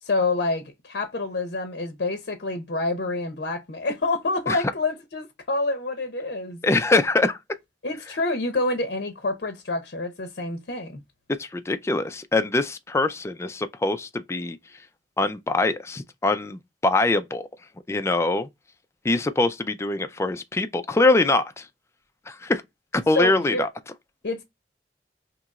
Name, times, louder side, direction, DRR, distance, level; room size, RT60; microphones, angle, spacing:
voice 1, 0.0-6.6 7.8-11.0 23.1-23.7 24.2-24.4, left 2 dB, 60° left, 0.7 m, -27 dB
voice 2, 6.6-7.4 11.4-14.6 15.2-17.5 17.9-18.5 19.0-21.7 22.3-22.6 22.9-23.7, left 2 dB, 15° left, 0.3 m, -23 dB
2.9 x 2.4 x 4.0 m
head